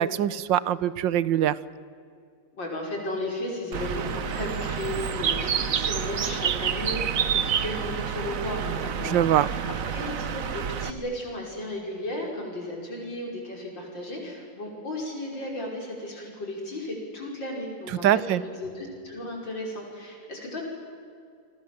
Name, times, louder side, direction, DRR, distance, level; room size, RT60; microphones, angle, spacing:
voice 1, 0.0-1.6 9.0-9.5 18.0-18.4, right 11 dB, 85° right, 17 dB, 1.5 m, -23 dB
voice 2, 2.5-20.6, left 1 dB, 85° left, 0 dB, 6.6 m, -35 dB
Bird, 3.7-10.9, right 7 dB, 50° right, 1.3 m, -28 dB
28.5 x 24.5 x 7.6 m, 2.4 s
omnidirectional pair, 2.0 m